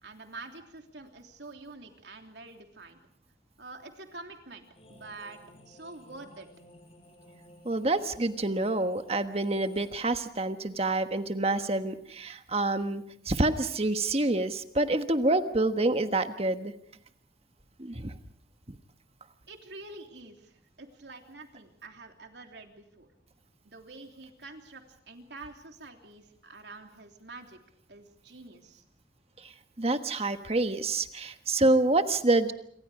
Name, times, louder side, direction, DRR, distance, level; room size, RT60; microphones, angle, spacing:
voice 1, 0.0-3.0 3.6-6.5 19.5-23.1 23.6-27.6 27.9-28.8, right 3 dB, 80° right, 4 dB, 3.3 m, -47 dB
sound 1, 4.7-9.9, left 1 dB, 35° left, 6.8 m, -55 dB
voice 2, 7.6-16.7 17.8-18.1 18.7-18.8 29.4-29.5 29.8-32.5, right 2 dB, 35° right, 9 dB, 1.4 m, -27 dB
27.5 x 25.0 x 5.0 m, 0.66 s
head